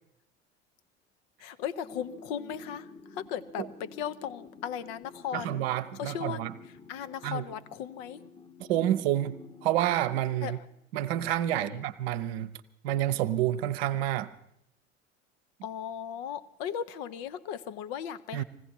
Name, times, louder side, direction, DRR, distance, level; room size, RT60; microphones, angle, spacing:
voice 1, 1.4-5.7 6.0-6.4 6.9-8.2 10.4-10.6 11.5-11.8 15.6-18.4, left 9 dB, 55° left, 0.8 m, -37 dB
sound 1, 1.8-10.8, left 3 dB, 15° left, 1.0 m, -51 dB
voice 2, 5.3-6.5 7.2-7.5 8.7-10.6 10.9-12.5 12.8-14.3 18.3-18.4, right 12 dB, 60° right, 0.9 m, -29 dB
20.0 x 16.0 x 4.4 m
figure-of-eight pair, 65°, 35 cm